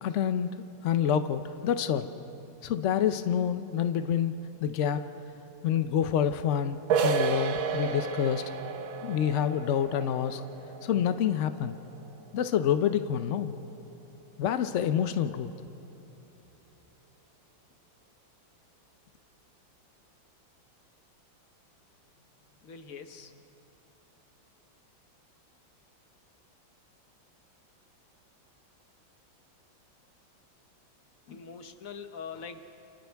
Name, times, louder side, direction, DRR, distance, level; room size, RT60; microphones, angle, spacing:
voice 1, 0.0-0.5 0.8-2.1 2.6-4.3 4.6-5.0 5.6-8.4 9.0-10.4 10.8-11.8 12.3-13.6 14.4-15.5, left 9 dB, 75° left, 10 dB, 0.6 m, -27 dB
sound 1, 6.9-12.4, right 6 dB, 80° right, 1.8 m, -32 dB
voice 2, 22.6-23.4 31.3-32.6, left 6 dB, 50° left, 8 dB, 1.2 m, -43 dB
29.5 x 28.5 x 3.5 m, 2.9 s
omnidirectional pair, 2.1 m